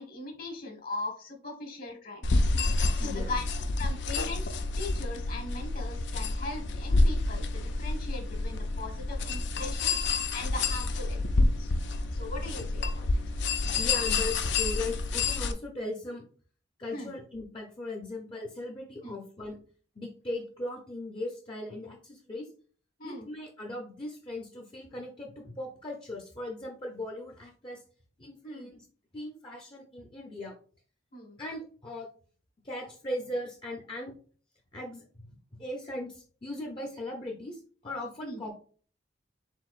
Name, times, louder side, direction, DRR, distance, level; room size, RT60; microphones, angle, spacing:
voice 1, 0.0-2.4 2.9-3.4 3.8-11.7 12.1-13.1 16.9-17.1 19.0-19.2 23.0-23.3 28.4-28.7 31.1-31.4 38.2-38.4, left 2 dB, 50° left, 2 dB, 1.3 m, -40 dB
sound 1, 2.2-15.5, left 3 dB, 65° left, 0.5 m, -28 dB
voice 2, 3.0-3.4 9.9-10.0 13.7-16.2 16.8-19.6 20.0-22.5 23.0-27.8 28.2-28.9 29.1-30.6 31.4-32.1 32.6-34.1 34.7-38.5, left 1 dB, 25° left, 0 dB, 0.7 m, -38 dB
4.7 x 3.9 x 2.4 m, 0.42 s
head